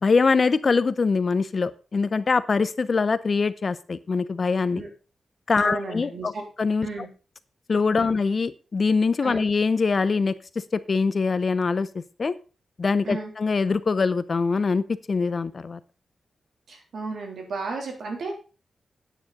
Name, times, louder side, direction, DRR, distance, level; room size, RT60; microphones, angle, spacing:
voice 1, 0.0-4.8 5.5-6.3 6.6-6.9 7.7-10.3 10.7-11.9 12.2-12.3 12.8-15.8, left 4 dB, 40° left, 15 dB, 0.6 m, -23 dB
voice 2, 5.6-6.4 6.8-7.1 8.0-8.1 9.2-9.4 13.0-13.3 16.7-18.3, right 3 dB, 75° right, 2 dB, 3.4 m, -33 dB
9.7 x 9.0 x 4.1 m, 0.33 s
wide cardioid pair, 150°, 0 cm